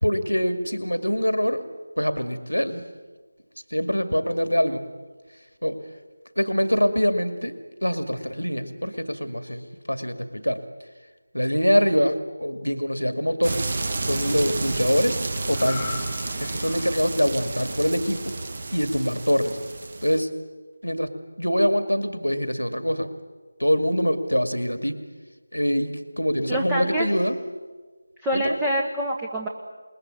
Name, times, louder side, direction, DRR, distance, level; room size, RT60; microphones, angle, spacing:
voice 1, 0.0-1.7 2.0-2.8 3.7-4.9 5.6-5.8 6.4-10.6 11.3-13.6 14.0-16.1 16.4-18.3 18.7-19.6 20.0-20.3 20.8-23.1 23.6-25.0 25.5-27.4 28.3-28.6, equal, 90° left, 9 dB, 2.3 m, -24 dB
sound 1, 13.4-20.2, right 3 dB, 40° right, 1.6 m, -31 dB
sound 2, 15.5-19.0 19.4-19.6, left 6 dB, 20° left, 1.2 m, -40 dB
voice 2, 26.5-27.1 28.2-29.5, right 1 dB, 5° right, -1 dB, 1.3 m, -26 dB
28.0 x 21.0 x 9.8 m, 1.4 s
figure-of-eight pair, 165°, 0 cm